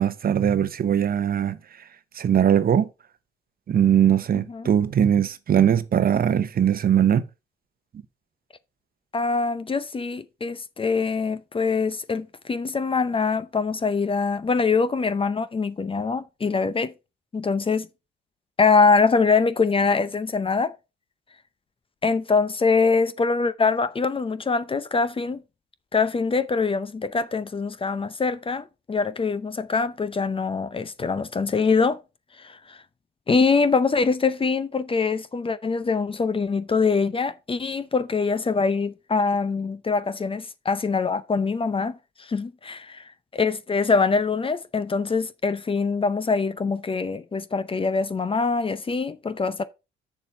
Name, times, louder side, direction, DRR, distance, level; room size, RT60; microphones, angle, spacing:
voice 1, 0.0-1.6 2.2-2.9 3.7-7.2, right 9 dB, 50° right, 0.8 m, -20 dB
voice 2, 9.1-16.9 17.3-17.9 18.6-20.7 22.0-25.4 25.9-32.0 32.4-32.8 33.3-49.6, left 4 dB, 25° left, 0.6 m, -24 dB
7.1 x 6.7 x 4.3 m
cardioid pair, 90°, 20 cm